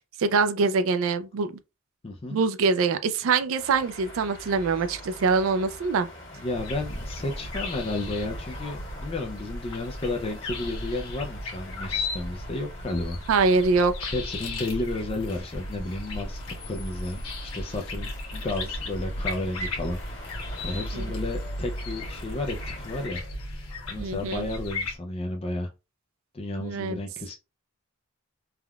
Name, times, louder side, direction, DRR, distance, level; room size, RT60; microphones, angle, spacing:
voice 1, 0.2-1.5 2.3-6.1 13.3-14.1 20.9-21.0 24.0-24.4 26.6-27.0, right 4 dB, 70° right, 0.3 m, -24 dB
voice 2, 2.0-2.4 6.4-13.2 14.1-20.0 20.6-23.2 23.9-25.7 26.3-27.3, left 2 dB, 25° left, 0.3 m, -32 dB
sound 1, 3.6-23.1, equal, 60° left, 1.4 m, -42 dB
sound 2, 6.5-25.0, left 2 dB, 85° left, 1.0 m, -36 dB
3.4 x 2.3 x 2.2 m
head